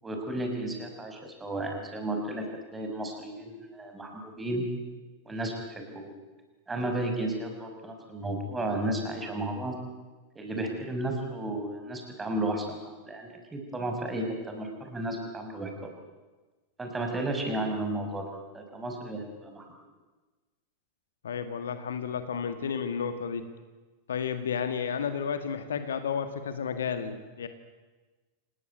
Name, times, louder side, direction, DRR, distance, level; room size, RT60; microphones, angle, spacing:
voice 1, 0.0-2.4 2.7-4.7 5.3-6.1 6.7-9.8 10.3-15.7 16.8-19.7, right 1 dB, 15° right, 3 dB, 5.9 m, -33 dB
voice 2, 21.2-23.5 24.1-27.5, left 7 dB, 65° left, 9 dB, 1.9 m, -32 dB
28.0 x 19.0 x 9.6 m, 1.3 s
figure-of-eight pair, 90°, 0 cm